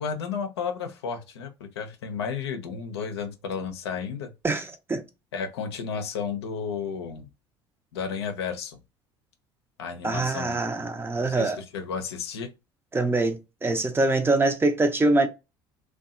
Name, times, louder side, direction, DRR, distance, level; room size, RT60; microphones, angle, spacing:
voice 1, 0.0-4.3 5.3-7.3 7.9-8.8 9.8-10.6 11.2-12.5, left 6 dB, 85° left, 0.5 m, -32 dB
voice 2, 4.4-5.0 10.0-11.6 12.9-15.3, right 2 dB, 15° right, 0.5 m, -24 dB
2.6 x 2.2 x 2.4 m
hypercardioid pair, 70°, 13 cm